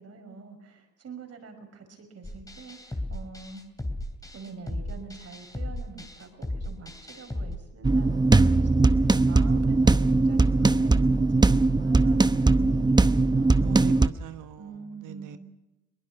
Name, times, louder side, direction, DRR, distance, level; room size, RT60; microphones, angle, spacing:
voice 1, 0.0-3.6 4.3-8.9 9.3-13.8 14.6-15.4, right 4 dB, 55° right, 6 dB, 5.7 m, -45 dB
sound 1, 2.2-7.5, left 1 dB, 10° left, 2.9 m, -36 dB
sound 2, 7.8-14.1, right 3 dB, 15° right, 0.8 m, -20 dB
voice 2, 13.6-14.8 15.0-15.4, right 11 dB, 85° right, 10 dB, 1.2 m, -39 dB
22.5 x 21.0 x 5.9 m, 1.0 s
cardioid pair, 90°, 30 cm